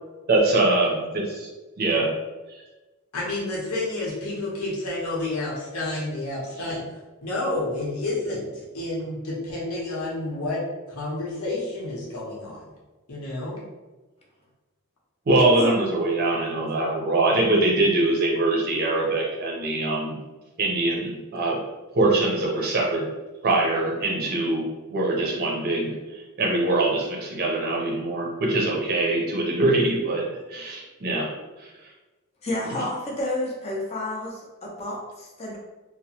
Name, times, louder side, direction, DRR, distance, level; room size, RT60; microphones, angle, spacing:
voice 1, 0.3-1.5 1.8-2.1 2.5-2.6 15.3-20.2 20.6-21.6 21.9-23.1 23.4-30.2 30.5-31.3 31.6-31.7, right 2 dB, 45° right, -2 dB, 0.5 m, -23 dB
voice 2, 3.1-6.8 7.2-10.6 10.9-12.6 13.1-13.6, left 2 dB, 85° left, -5 dB, 0.9 m, -30 dB
voice 3, 32.4-35.6, left 1 dB, 30° left, -2 dB, 0.5 m, -30 dB
2.9 x 2.0 x 2.8 m, 1.2 s
head